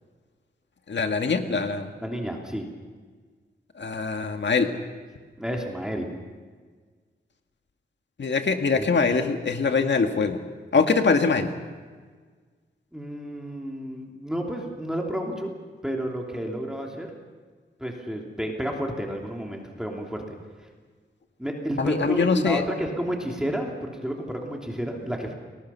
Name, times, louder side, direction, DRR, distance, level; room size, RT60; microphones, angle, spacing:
voice 1, 0.9-1.9 3.8-4.7 8.2-10.4 10.7-11.5 21.8-22.6, left 4 dB, 70° left, 5 dB, 1.9 m, -23 dB
voice 2, 2.0-2.6 5.4-6.1 8.7-8.9 12.9-15.5 15.8-17.1 17.8-20.4 21.4-25.3, equal, 5° right, 0 dB, 2.9 m, -31 dB
30.0 x 21.0 x 5.7 m, 1.5 s
wide cardioid pair, 135°, 19 cm